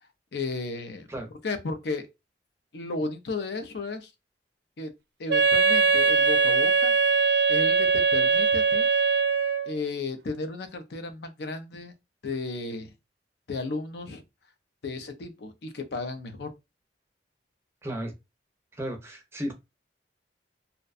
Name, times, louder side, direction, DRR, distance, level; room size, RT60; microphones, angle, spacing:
voice 1, 0.3-1.1 1.4-2.1 2.7-4.1 4.8-4.9 5.2-6.9 7.5-8.9 9.7-11.9 12.2-12.9 13.5-14.2 14.8-16.5, left 3 dB, 65° left, 0.5 m, -34 dB
Wind instrument woodwind instrument, 5.3-9.7, right 5 dB, 70° right, 0.5 m, -21 dB
voice 2, 17.8-18.1 18.8-19.5, equal, 15° right, 0.5 m, -34 dB
2.5 x 2.1 x 2.4 m
head